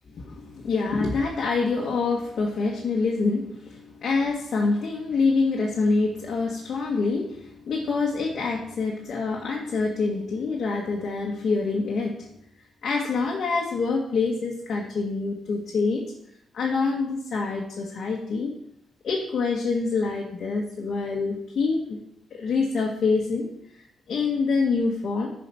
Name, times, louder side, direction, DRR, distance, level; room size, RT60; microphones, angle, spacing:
voice 1, 0.1-12.3 12.8-16.0 16.5-18.5 19.0-22.0 22.3-23.5 24.1-25.3, left 4 dB, 50° left, -2 dB, 1.5 m, -26 dB
10.5 x 5.1 x 5.6 m, 0.74 s
cardioid pair, 135°, 0 cm